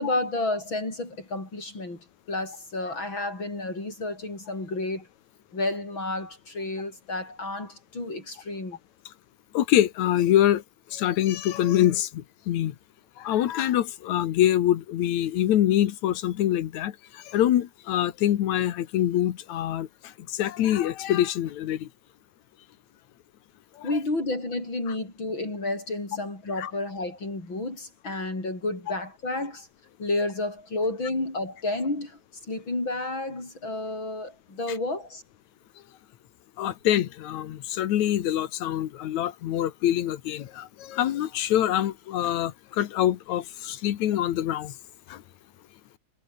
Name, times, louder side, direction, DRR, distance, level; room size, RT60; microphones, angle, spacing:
voice 1, 0.0-2.0 2.3-5.1 5.5-8.8 23.8-29.7 30.0-32.2 32.5-35.2, left 2 dB, 35° left, 8.0 m, -31 dB
voice 2, 9.5-10.6 10.9-12.7 13.2-16.9 17.3-19.9 20.3-21.9 23.8-23.9 26.6-26.7 36.6-44.7 45.1-45.2, left 12 dB, 65° left, 2.4 m, -25 dB
omnidirectional pair, 3.8 m